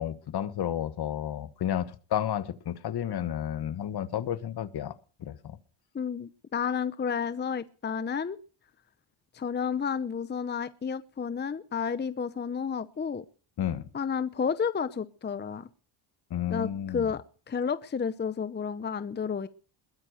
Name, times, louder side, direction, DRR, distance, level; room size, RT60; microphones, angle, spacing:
voice 1, 0.0-4.9 5.2-5.6 13.6-13.8 16.3-17.0, left 10 dB, 50° left, 1.4 m, -31 dB
voice 2, 5.9-8.4 9.3-13.2 13.9-15.7 16.5-19.5, left 6 dB, 20° left, 0.8 m, -31 dB
21.5 x 9.8 x 6.5 m
cardioid pair, 110°, 48 cm